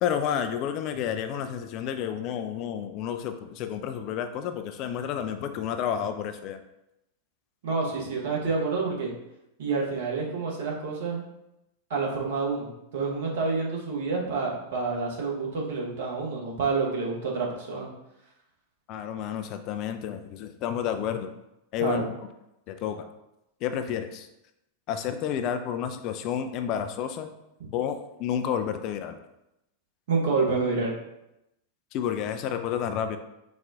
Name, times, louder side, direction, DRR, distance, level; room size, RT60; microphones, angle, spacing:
voice 1, 0.0-6.6 18.9-21.3 21.7-22.0 22.7-23.1 23.6-24.3 24.9-27.3 27.7-29.2 31.9-33.2, left 9 dB, 40° left, 7 dB, 0.3 m, -30 dB
voice 2, 7.6-9.1 9.6-11.2 11.9-12.7 12.9-17.9 21.8-22.1 30.1-30.9, right 4 dB, 55° right, -2 dB, 1.0 m, -28 dB
4.1 x 2.3 x 3.5 m, 0.88 s
figure-of-eight pair, 90°, 0 cm